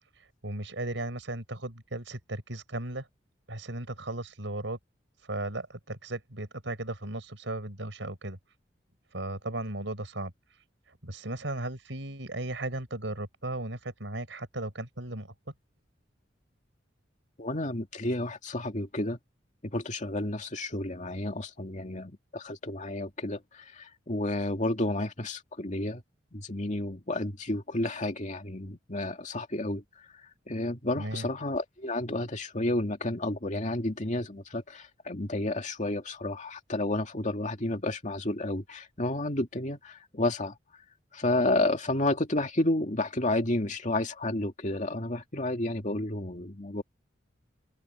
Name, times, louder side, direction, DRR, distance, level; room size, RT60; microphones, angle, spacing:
voice 1, 0.4-3.1 3.5-4.8 5.2-8.4 9.1-10.3 11.0-15.3 31.0-31.3, right 1 dB, 75° right, 5.3 m, -36 dB
voice 2, 17.4-19.2 19.6-26.0 26.3-29.8 30.1-40.6 41.1-46.8, left 1 dB, 40° left, 2.4 m, -31 dB
open air
head